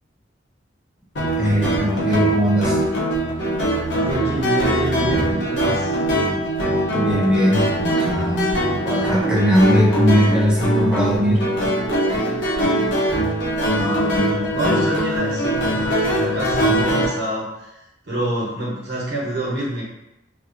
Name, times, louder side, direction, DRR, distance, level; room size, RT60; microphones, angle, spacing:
sound 1, 1.2-17.1, right 1 dB, 70° left, 0.8 m, -22 dB
voice 1, 1.4-2.8 6.9-8.6 8.8-11.5, equal, 5° right, -5 dB, 0.6 m, -19 dB
voice 2, 3.9-5.9 13.1-13.2 13.7-17.7 18.0-19.8, right 1 dB, 60° right, -6 dB, 1.0 m, -26 dB
3.0 x 2.5 x 2.6 m, 0.92 s
head